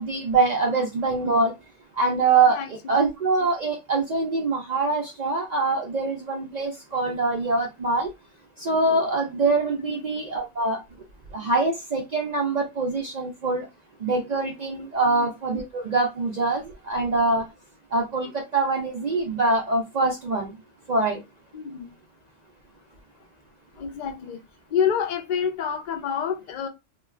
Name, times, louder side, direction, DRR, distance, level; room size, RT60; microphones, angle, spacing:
voice 1, 0.0-1.5 1.9-8.1 8.6-10.8 11.3-13.7 14.0-17.5 17.9-20.6 20.9-21.2, right 3 dB, 60° right, 0.4 m, -24 dB
voice 2, 2.5-3.0 9.8-10.0 15.0-15.3 21.5-21.9 23.8-24.4 24.7-26.7, left 7 dB, 55° left, 0.5 m, -28 dB
2.3 x 2.3 x 3.1 m
omnidirectional pair, 1.3 m